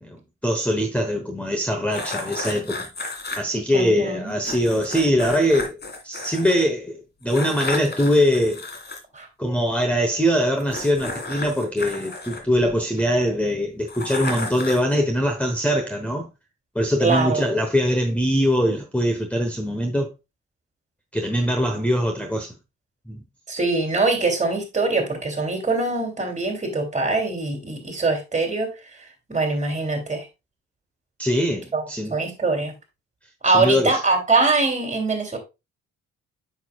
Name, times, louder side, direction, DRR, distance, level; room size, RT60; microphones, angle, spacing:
voice 1, 0.0-2.9 3.4-5.8 6.0-8.7 9.4-16.3 16.7-20.1 21.1-22.5 23.1-23.2 31.2-32.2 33.5-34.0, equal, 5° left, 1.1 m, -22 dB
sound 1, 1.9-3.4 4.4-6.6 7.3-9.0 10.6-13.0 13.9-14.9, left 2 dB, 35° left, 2.1 m, -33 dB
voice 2, 3.7-4.3 9.1-9.3 17.0-17.4 23.5-28.7 29.3-30.2 31.7-32.7 33.4-35.4, right 3 dB, 25° right, 3.0 m, -23 dB
8.2 x 6.5 x 2.4 m
cardioid pair, 90°, 30 cm